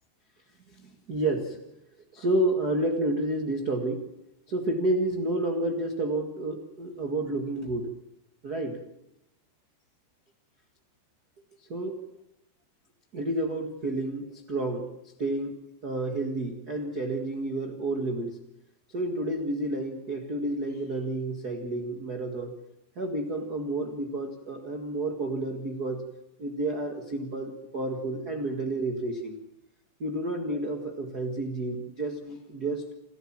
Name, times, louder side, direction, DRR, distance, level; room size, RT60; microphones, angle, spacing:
voice 1, 0.8-1.6 2.1-4.0 4.5-7.9 8.4-8.8 11.7-12.0 13.1-14.9 15.2-15.6 15.8-18.3 18.9-22.5 23.0-26.0 26.4-29.4 30.0-32.9, right 2 dB, 55° right, 3 dB, 1.0 m, -30 dB
29.0 x 13.5 x 7.5 m, 0.84 s
omnidirectional pair, 5.0 m